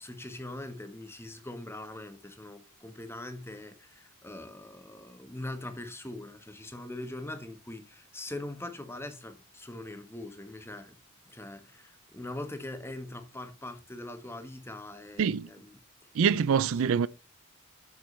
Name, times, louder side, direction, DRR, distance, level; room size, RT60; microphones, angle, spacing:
voice 1, 0.0-11.0 11.3-15.8 16.2-16.4 16.8-17.0, left 1 dB, 10° left, 1.2 m, -42 dB
voice 2, 16.2-17.1, right 7 dB, 60° right, 0.4 m, -25 dB
8.4 x 7.7 x 3.2 m
head